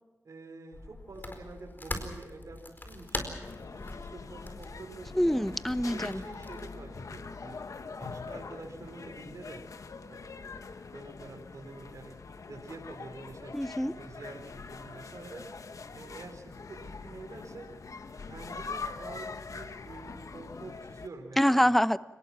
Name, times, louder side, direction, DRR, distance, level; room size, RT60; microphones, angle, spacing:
voice 1, 0.2-2.6 2.8-3.3 3.9-5.5 5.8-7.6 8.0-9.6 10.1-10.6 10.9-12.2 12.5-13.5 13.9-15.5 15.9-17.7 18.3-21.7, right 3 dB, 75° right, 1 dB, 4.6 m, -47 dB
sound 1, 0.7-6.7, left 2 dB, 35° left, 4.5 m, -42 dB
sound 2, 3.4-21.1, left 4 dB, 75° left, 1.4 m, -43 dB
voice 2, 5.1-6.2 13.5-13.9 21.4-22.0, equal, 5° left, 14 dB, 0.8 m, -25 dB
29.5 x 19.5 x 6.0 m, 1.2 s
wide cardioid pair, 70°, 6 cm